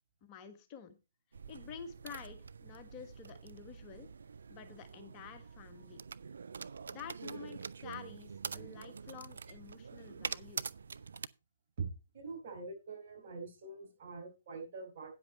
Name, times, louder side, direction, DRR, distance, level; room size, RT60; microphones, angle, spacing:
voice 1, 0.2-1.0 1.5-4.1 4.5-6.0 6.9-10.6, left 7 dB, 30° left, 7 dB, 1.3 m, -50 dB
sound 1, 1.3-11.3, right 5 dB, 70° right, 0.4 m, -45 dB
voice 2, 12.1-15.2, right 4 dB, 50° right, 1 dB, 5.2 m, -44 dB
9.7 x 7.8 x 4.3 m, 0.28 s
figure-of-eight pair, 125°, 0 cm